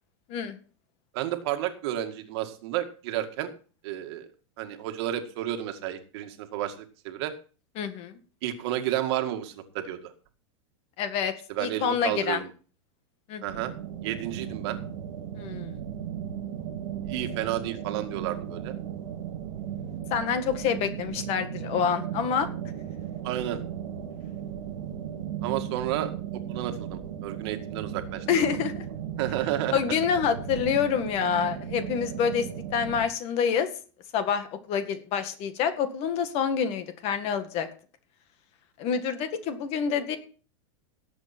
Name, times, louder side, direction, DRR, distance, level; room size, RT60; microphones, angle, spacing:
voice 1, 1.1-3.5 3.8-4.3 4.6-6.7 7.0-7.3 8.4-10.1 11.5-12.5 13.4-13.7 14.0-14.8 17.1-18.7 23.2-23.6 25.4-26.1 26.5-28.5 29.2-30.0, right 12 dB, 55° right, 7 dB, 2.0 m, -31 dB
voice 2, 7.8-8.2 11.0-11.3 11.6-12.4 13.3-13.4 15.4-15.8 20.1-22.5 28.3-28.8 29.7-33.7 34.1-37.7 38.8-40.2, left 7 dB, 40° left, 9 dB, 1.9 m, -27 dB
sound 1, 13.5-33.1, right 9 dB, 90° right, 2.8 m, -36 dB
18.0 x 7.9 x 4.4 m, 0.38 s
supercardioid pair, 150°, 16 cm